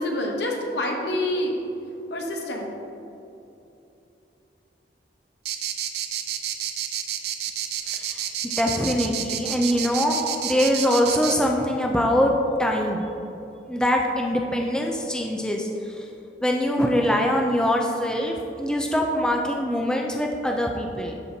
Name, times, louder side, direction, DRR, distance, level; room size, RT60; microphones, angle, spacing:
voice 1, 0.0-1.6 2.1-2.7, left 1 dB, 80° left, 1 dB, 0.9 m, -27 dB
sound 1, 5.4-11.3, right 10 dB, 65° right, 0.5 m, -29 dB
voice 2, 7.9-8.2 8.6-10.2 10.4-12.3 12.6-13.0 13.7-16.1 16.4-21.2, equal, 5° left, 0 dB, 0.4 m, -23 dB
12.0 x 4.2 x 2.7 m, 2.9 s
head